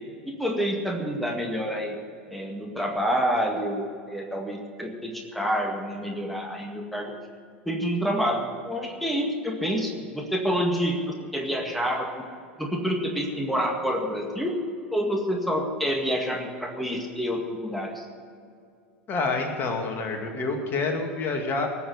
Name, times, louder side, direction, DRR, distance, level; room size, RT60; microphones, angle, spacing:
voice 1, 0.3-2.0 2.3-7.1 7.7-12.3 12.6-14.6 14.9-18.1, equal, ahead, 1 dB, 1.9 m, -28 dB
voice 2, 19.1-21.7, left 3 dB, 35° left, 3 dB, 2.3 m, -27 dB
19.0 x 7.0 x 8.2 m, 2.3 s
figure-of-eight pair, 85°, 6 cm